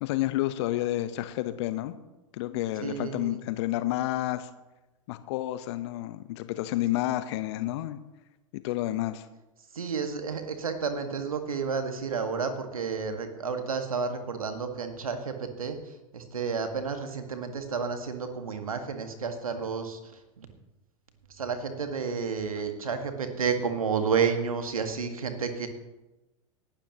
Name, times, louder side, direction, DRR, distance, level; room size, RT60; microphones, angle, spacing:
voice 1, 0.0-1.9 2.3-4.5 5.1-8.0 8.5-9.3, left 15 dB, 50° left, 12 dB, 0.9 m, -30 dB
voice 2, 2.8-3.4 9.7-20.5 21.3-25.7, right 5 dB, 75° right, 7 dB, 1.7 m, -31 dB
18.5 x 11.5 x 3.0 m, 1.0 s
figure-of-eight pair, 95°, 18 cm